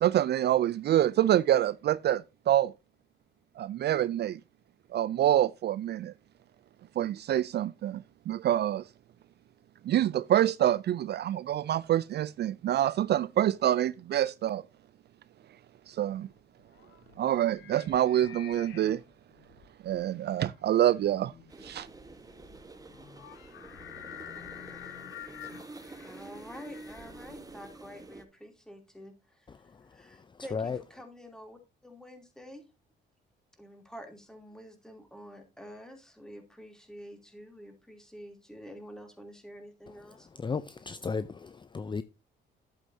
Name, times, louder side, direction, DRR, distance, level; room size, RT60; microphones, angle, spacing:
voice 1, 0.0-2.7 3.6-4.4 4.9-6.1 7.0-8.8 9.8-14.6 15.9-16.3 17.2-19.0 19.8-21.3 21.6-21.9, right 12 dB, 55° right, 0.4 m, -26 dB
sound 1, 16.2-27.7, left 10 dB, 85° left, 1.4 m, -49 dB
sound 2, 21.5-28.2, right 2 dB, 20° right, 1.4 m, -48 dB
voice 2, 26.0-32.6 33.6-40.3, equal, 5° left, 3.0 m, -48 dB
voice 3, 30.5-30.8 40.4-42.0, left 5 dB, 25° left, 0.5 m, -34 dB
11.0 x 8.3 x 2.7 m
cardioid pair, 90°, 20 cm